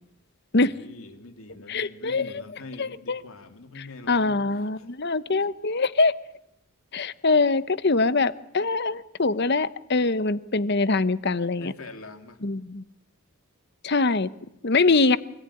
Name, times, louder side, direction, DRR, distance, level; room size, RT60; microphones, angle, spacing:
voice 1, 0.6-4.4 4.8-5.1 11.6-12.4, left 2 dB, 70° left, 6 dB, 2.8 m, -44 dB
voice 2, 1.7-2.3 2.8-3.2 3.8-6.1 6.9-11.7 12.4-12.8 13.8-14.3 14.6-15.2, left 3 dB, 50° left, 15 dB, 0.9 m, -23 dB
25.5 x 18.5 x 9.9 m, 0.81 s
head